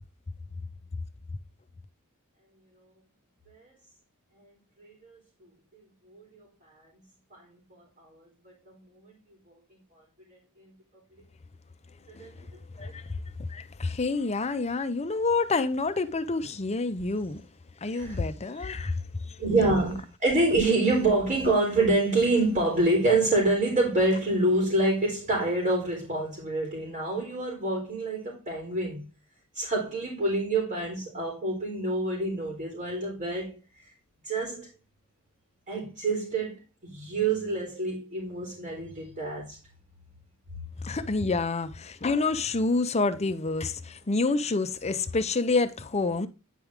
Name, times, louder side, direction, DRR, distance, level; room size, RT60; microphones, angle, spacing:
voice 1, 4.8-5.2 5.7-6.5 7.3-8.2 8.7-9.1 10.3-10.7 12.2-12.3 12.8-12.9 17.9-18.2 19.4-29.1 29.5-33.6 34.2-34.7 35.7-39.6, right 2 dB, 40° right, 3.4 m, -27 dB
voice 2, 13.5-17.4 17.8-19.0 19.3-19.6 40.8-46.3, left 3 dB, 30° left, 0.6 m, -28 dB
9.3 x 4.7 x 3.6 m
head